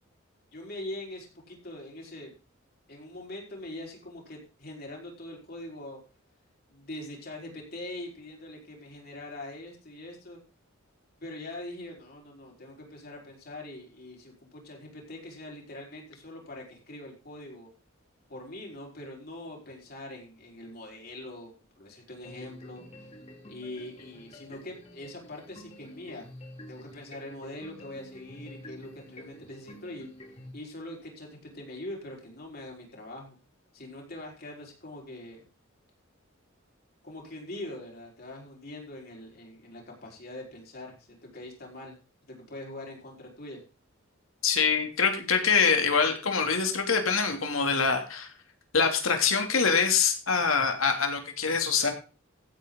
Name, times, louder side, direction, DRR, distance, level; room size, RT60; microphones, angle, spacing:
voice 1, 0.5-2.3 2.9-6.0 6.7-10.4 11.2-17.7 18.3-21.5 21.8-23.1 23.5-26.3 26.7-30.1 30.5-33.4 33.7-35.5 37.0-43.6, left 1 dB, 50° left, -1 dB, 4.8 m, -43 dB
sound 1, 22.2-30.5, left 1 dB, 30° left, 2.9 m, -48 dB
voice 2, 44.4-48.3 48.7-51.9, left 5 dB, 85° left, 4 dB, 2.9 m, -24 dB
15.5 x 8.7 x 4.0 m, 0.33 s
head